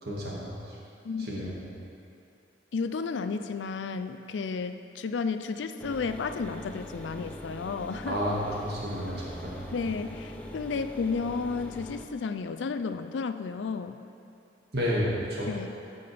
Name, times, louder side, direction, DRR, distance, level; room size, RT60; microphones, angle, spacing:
voice 1, 0.0-0.8 1.2-1.5 8.1-9.7 14.7-15.5, equal, 60° right, -6 dB, 2.0 m, -31 dB
voice 2, 2.7-8.2 9.7-14.0 15.5-15.7, left 4 dB, 85° left, 9 dB, 0.4 m, -32 dB
sound 1, 5.8-12.0, left 1 dB, 5° left, 0.5 m, -42 dB
14.0 x 5.5 x 3.4 m, 2.6 s
head